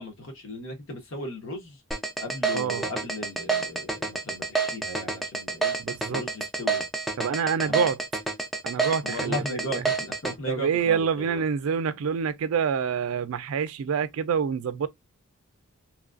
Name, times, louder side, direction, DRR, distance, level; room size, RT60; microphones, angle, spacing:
voice 1, 0.0-1.8 2.2-5.8 6.1-6.8 7.6-7.9 9.0-11.4, equal, 70° left, 1.2 m, -36 dB
sound 1, 1.9-10.3, right 4 dB, ahead, 0.4 m, -28 dB
voice 2, 2.5-2.8 5.8-6.2 7.2-8.0 8.6-9.8 10.5-14.9, right 6 dB, 85° right, 0.4 m, -27 dB
3.1 x 2.3 x 2.4 m
head